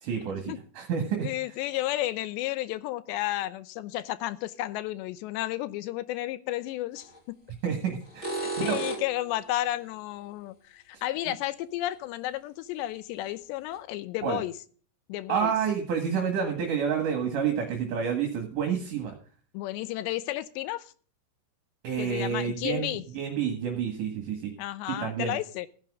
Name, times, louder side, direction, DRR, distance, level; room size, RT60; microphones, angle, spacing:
voice 1, 0.0-1.3 7.6-8.8 14.2-14.4 15.3-19.1 21.8-24.5 24.9-25.4, right 7 dB, 55° right, 3.0 m, -29 dB
voice 2, 1.2-7.4 8.4-14.5 15.1-15.6 19.5-20.9 22.0-23.0 24.6-25.7, left 15 dB, 85° left, 3.0 m, -32 dB
sound 1, 7.0-7.2 8.0-9.3 11.9-12.0 12.8-12.9 13.3-13.4 13.7-13.8, right 3 dB, 20° left, 2.8 m, -33 dB
15.5 x 10.5 x 3.7 m
omnidirectional pair, 5.0 m